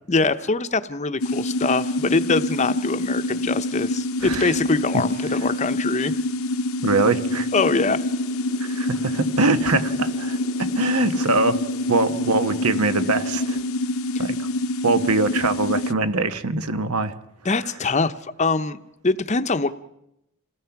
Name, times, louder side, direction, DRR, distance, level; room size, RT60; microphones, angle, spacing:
voice 1, 0.1-6.1 7.5-8.0 17.4-19.7, left 3 dB, 30° left, 12 dB, 0.7 m, -23 dB
sound 1, 1.2-15.9, left 2 dB, 70° left, 0.8 m, -26 dB
voice 2, 4.2-4.5 6.8-7.5 8.6-11.6 11.9-13.6 14.2-14.4 14.8-17.1, right 3 dB, 90° right, 10 dB, 1.2 m, -23 dB
sound 2, 7.3-13.6, equal, 40° right, 3.2 m, -45 dB
28.5 x 17.5 x 5.9 m, 0.82 s
head